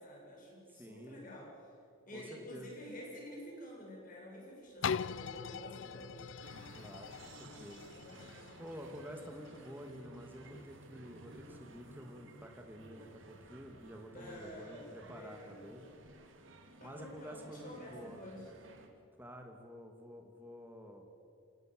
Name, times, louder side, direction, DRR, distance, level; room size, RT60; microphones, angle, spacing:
voice 1, 0.0-1.5 2.1-6.3 8.0-8.4 14.1-15.6 16.8-18.5, equal, 40° left, -2 dB, 7.5 m, -49 dB
voice 2, 0.7-1.2 2.1-2.7 6.8-7.9 8.3-15.8 16.8-18.2 19.2-21.1, equal, 10° right, 3 dB, 2.6 m, -50 dB
sound 1, 4.8-10.6 11.1-11.2, left 6 dB, 65° left, 0.5 m, -42 dB
sound 2, 6.4-18.9, right 2 dB, 70° right, 2.9 m, -55 dB
27.5 x 17.0 x 8.0 m, 2.4 s
head